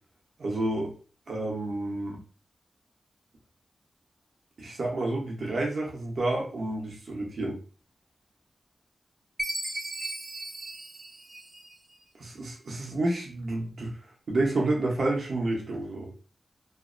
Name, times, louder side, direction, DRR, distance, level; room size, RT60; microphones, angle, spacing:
voice 1, 0.4-0.9 1.3-2.2 4.6-7.6 12.2-13.9 14.3-16.1, right 2 dB, 80° right, -2 dB, 0.8 m, -29 dB
Chime, 9.4-11.9, right 1 dB, 40° right, 0.6 m, -36 dB
2.6 x 2.1 x 2.5 m, 0.39 s
cardioid pair, 45°, 0 cm